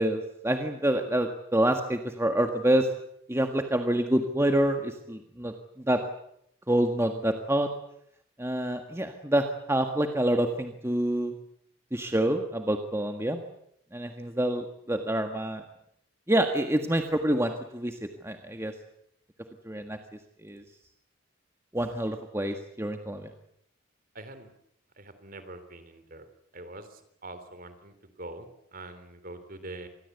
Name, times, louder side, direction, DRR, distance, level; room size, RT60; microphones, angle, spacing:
voice 1, 0.0-2.9 3.3-5.5 5.9-6.0 6.7-7.7 8.4-11.3 11.9-13.4 13.9-15.6 16.3-18.7 19.6-20.0 20.4-20.6 21.7-23.3, right 1 dB, 10° right, 5 dB, 1.6 m, -27 dB
voice 2, 24.1-24.5 25.0-26.3 26.5-29.9, right 2 dB, 40° right, 10 dB, 3.4 m, -44 dB
27.0 x 21.0 x 8.2 m, 0.73 s
head